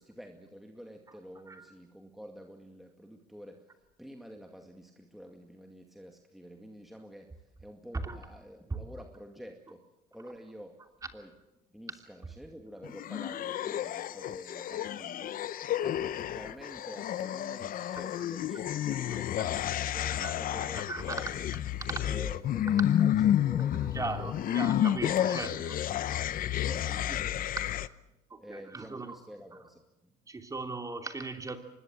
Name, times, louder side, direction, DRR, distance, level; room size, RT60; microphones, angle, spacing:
voice 1, 0.0-10.8 11.1-11.3 11.7-21.5 22.0-26.3 26.6-27.6 28.4-30.1, equal, ahead, 3 dB, 2.1 m, -49 dB
sound 1, 12.8-27.9, left 11 dB, 45° left, 0.8 m, -31 dB
voice 2, 20.2-21.1 21.9-22.0 23.9-25.7 28.3-29.2 30.3-31.6, right 3 dB, 15° right, 5 dB, 3.0 m, -38 dB
24.5 x 21.0 x 7.7 m, 0.99 s
supercardioid pair, 105°, 20 cm